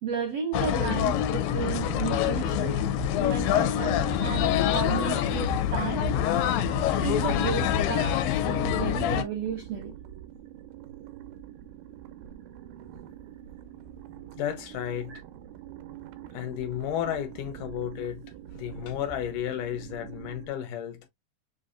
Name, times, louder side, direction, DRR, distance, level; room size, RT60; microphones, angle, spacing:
voice 1, 0.0-2.8 3.2-6.0 7.0-9.9 15.1-15.2, right 7 dB, 75° right, 1.5 m, -33 dB
sound 1, 0.5-9.2, left 9 dB, 90° left, 2.4 m, -26 dB
sound 2, 0.9-20.5, right 11 dB, 90° right, 2.5 m, -45 dB
sound 3, 3.2-8.4, left 1 dB, 45° left, 1.0 m, -46 dB
voice 2, 14.4-15.2 16.3-18.2 18.5-21.0, left 10 dB, 75° left, 2.1 m, -33 dB
6.9 x 2.6 x 2.4 m
omnidirectional pair, 4.0 m